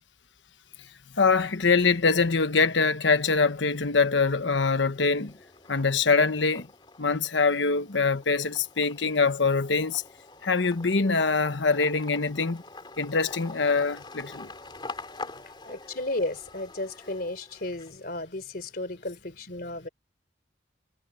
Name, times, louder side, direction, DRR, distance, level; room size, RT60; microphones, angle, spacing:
voice 1, 1.1-5.3 5.7-6.7 7.0-10.0 10.4-12.6 13.0-14.5, left 4 dB, 80° left, 1.2 m, -24 dB
sound 1, 3.6-4.3 4.7-18.2, left 3 dB, 25° left, 3.9 m, -46 dB
voice 2, 15.6-19.9, left 2 dB, 55° left, 3.7 m, -34 dB
head